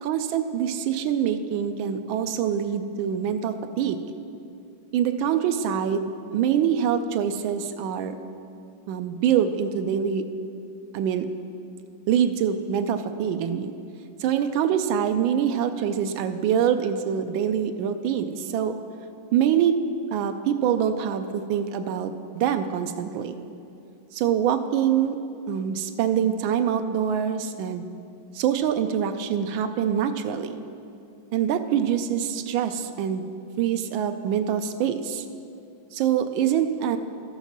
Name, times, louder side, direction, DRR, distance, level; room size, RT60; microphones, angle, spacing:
voice 1, 0.0-4.0 4.9-8.1 8.9-10.2 10.9-11.3 12.1-13.7 14.2-18.7 19.3-19.8 20.1-23.4 24.1-25.2 25.5-27.9 28.3-30.6 31.3-33.3 33.6-35.2 35.9-37.0, right 8 dB, 90° right, 8 dB, 1.4 m, -25 dB
13.5 x 5.6 x 5.9 m, 2.5 s
omnidirectional pair, 2.1 m